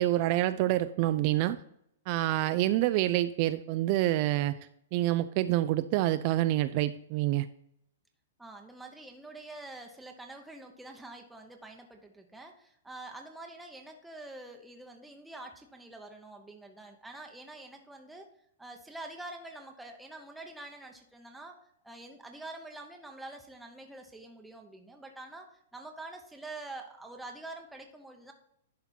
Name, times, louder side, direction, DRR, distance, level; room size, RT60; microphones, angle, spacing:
voice 1, 0.0-1.6 2.1-4.6 4.9-7.5, right 15 dB, 40° right, 12 dB, 0.3 m, -27 dB
voice 2, 8.4-18.3 18.6-21.6 21.8-28.3, right 2 dB, 5° right, 2 dB, 0.8 m, -46 dB
11.0 x 4.3 x 4.3 m, 0.74 s
hypercardioid pair, 150°, 0 cm